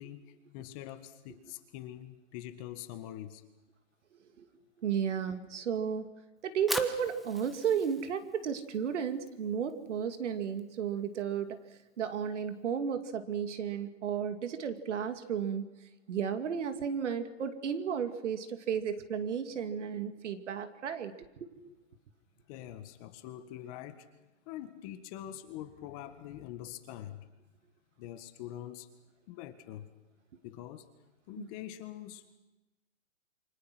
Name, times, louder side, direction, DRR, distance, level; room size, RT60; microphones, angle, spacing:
voice 1, 0.0-3.4 22.5-24.1 24.4-27.2 28.0-28.9 29.3-29.9 30.4-30.9 31.3-32.4, left 12 dB, 25° left, 9 dB, 1.6 m, -44 dB
voice 2, 4.8-6.1 6.4-11.6 12.0-15.7 16.1-21.5 31.4-31.5, right 7 dB, 65° right, 9 dB, 2.6 m, -33 dB
Fire, 6.4-12.6, equal, ahead, 0.8 m, -44 dB
28.0 x 24.5 x 6.2 m, 1.0 s
hypercardioid pair, 155°, 39 cm